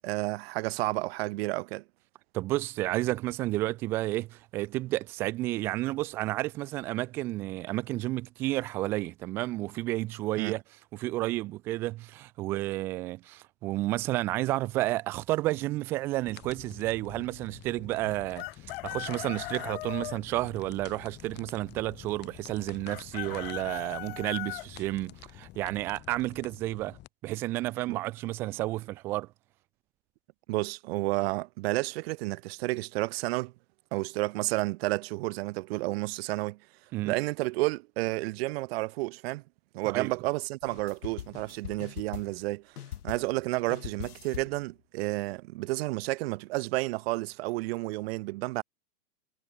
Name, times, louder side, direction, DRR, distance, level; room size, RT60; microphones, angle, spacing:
voice 1, 0.0-1.8 10.4-10.5 27.9-28.0 30.5-33.5 33.9-36.6 37.0-39.4 39.7-42.6 43.0-48.6, right 21 dB, 40° right, 2.5 m, -31 dB
voice 2, 2.3-10.6 10.9-27.0 27.2-29.3 36.9-37.1 39.9-40.1, right 17 dB, 5° right, 0.4 m, -31 dB
sound 1, 16.2-27.1, left 15 dB, 20° left, 2.7 m, -49 dB
Chicken rooster, 18.4-20.2 22.9-24.7, left 20 dB, 40° left, 1.3 m, -38 dB
sound 2, 40.6-42.5 42.8-43.4 43.7-44.6, left 10 dB, 80° left, 2.4 m, -42 dB
hypercardioid pair, 155°, 46 cm